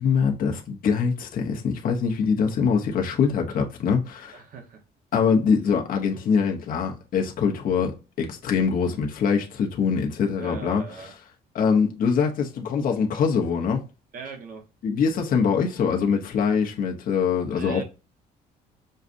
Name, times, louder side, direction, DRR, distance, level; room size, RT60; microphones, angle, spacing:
voice 1, 0.0-4.3 5.1-7.9 8.2-10.8 11.5-13.8 14.8-17.8, left 6 dB, 55° left, 1.0 m, -23 dB
voice 2, 4.3-4.8 10.3-11.1 14.1-14.7 17.5-17.8, right 6 dB, 55° right, 1.2 m, -39 dB
6.4 x 2.4 x 2.6 m
cardioid pair, 110°, 17 cm